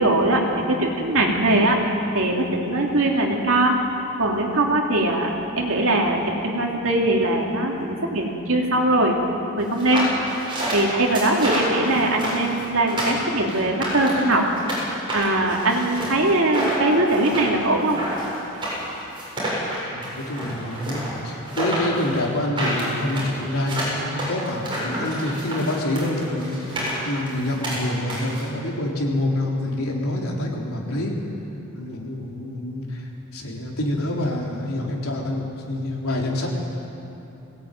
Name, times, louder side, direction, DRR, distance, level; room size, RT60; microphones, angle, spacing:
voice 1, 0.0-1.8 2.1-3.8 4.2-9.2 9.6-10.1 10.7-14.5 15.1-18.0, right 1 dB, 65° right, 0 dB, 3.1 m, -21 dB
sound 1, 9.7-14.8 15.1-28.4, right 1 dB, 25° right, 7.8 m, -29 dB
voice 2, 19.9-31.2 31.7-33.1 33.3-36.5, left 1 dB, 80° left, -1 dB, 4.0 m, -27 dB
21.0 x 17.5 x 9.3 m, 2.8 s
head